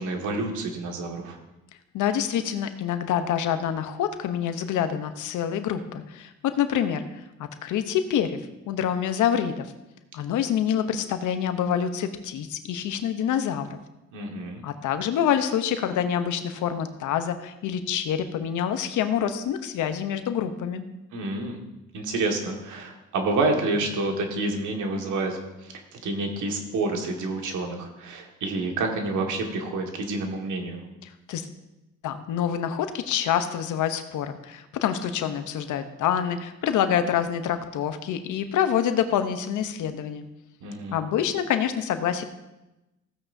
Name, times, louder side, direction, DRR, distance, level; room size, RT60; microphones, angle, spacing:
voice 1, 0.0-1.4 14.1-14.6 21.1-21.6 21.9-30.8 40.6-41.0, right 2 dB, 75° right, 2 dB, 1.9 m, -28 dB
voice 2, 1.9-7.1 7.4-8.4 8.7-9.7 10.1-13.8 14.6-20.8 31.0-31.5 32.0-40.2 40.9-42.2, left 9 dB, 80° left, 9 dB, 0.9 m, -26 dB
15.5 x 8.9 x 2.7 m, 0.98 s
cardioid pair, 90°, 30 cm